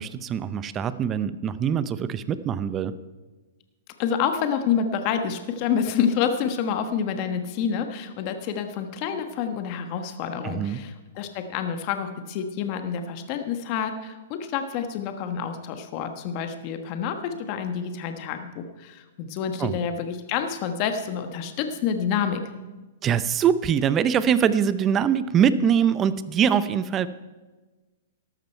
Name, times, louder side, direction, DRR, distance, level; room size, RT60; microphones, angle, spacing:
voice 1, 0.0-2.9 10.4-10.8 19.6-19.7 23.0-27.1, right 8 dB, 25° right, 14 dB, 0.6 m, -23 dB
voice 2, 4.0-22.4, left 7 dB, 40° left, 7 dB, 1.3 m, -28 dB
13.5 x 12.5 x 4.5 m, 1.2 s
hypercardioid pair, 140°, 0 cm